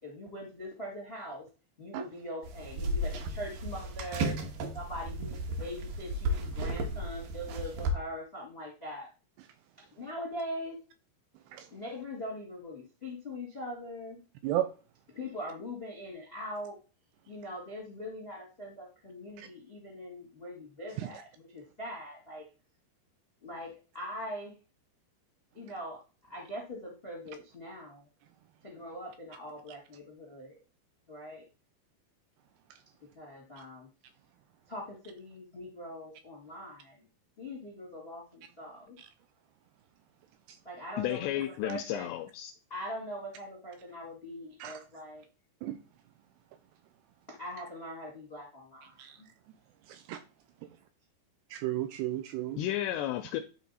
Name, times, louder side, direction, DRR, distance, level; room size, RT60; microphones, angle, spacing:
voice 1, 0.0-1.4 1.8-4.3 4.7-9.1 9.9-10.7 11.7-14.2 15.1-16.8 17.3-22.4 23.4-24.5 25.5-26.0 26.3-28.1 28.6-30.6 31.1-31.4 33.1-33.9 34.7-37.0 37.4-39.0 40.6-42.1 42.7-45.2 47.4-49.3, equal, 50° left, 0.6 m, -42 dB
sound 1, 2.4-7.9, right 1 dB, 65° right, 2.4 m, -34 dB
voice 2, 41.0-42.5 52.6-53.4, left 13 dB, 85° left, 2.4 m, -32 dB
voice 3, 51.5-52.6, right 13 dB, 85° right, 2.5 m, -33 dB
11.0 x 4.3 x 4.1 m
omnidirectional pair, 5.3 m